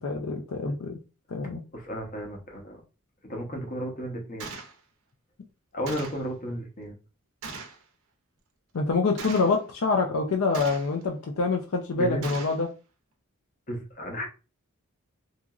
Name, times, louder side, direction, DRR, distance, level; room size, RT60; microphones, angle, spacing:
voice 1, 0.0-1.0 1.3-1.6 8.7-12.7, left 3 dB, 70° left, 0.4 m, -26 dB
voice 2, 1.7-2.8 3.3-4.5 5.7-7.0 12.0-12.3 13.7-14.2, equal, 40° left, 0.8 m, -33 dB
Gunshot gunfire, 4.4-4.7 5.9-6.3 7.4-7.8 9.2-9.6 10.5-11.0 12.2-12.6, right 4 dB, 75° right, 0.5 m, -39 dB
2.9 x 2.5 x 2.3 m
head